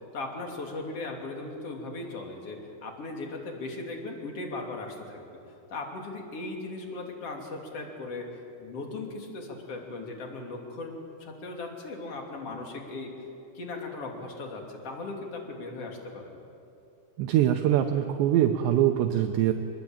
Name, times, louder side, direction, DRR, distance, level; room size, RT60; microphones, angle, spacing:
voice 1, 0.1-5.3 5.7-8.3 8.6-10.9 11.2-13.1 13.5-16.4, left 3 dB, 35° left, 2 dB, 3.3 m, -38 dB
voice 2, 17.2-19.5, right 11 dB, 75° right, 4 dB, 3.0 m, -23 dB
25.0 x 21.5 x 8.9 m, 2.7 s
omnidirectional pair, 5.4 m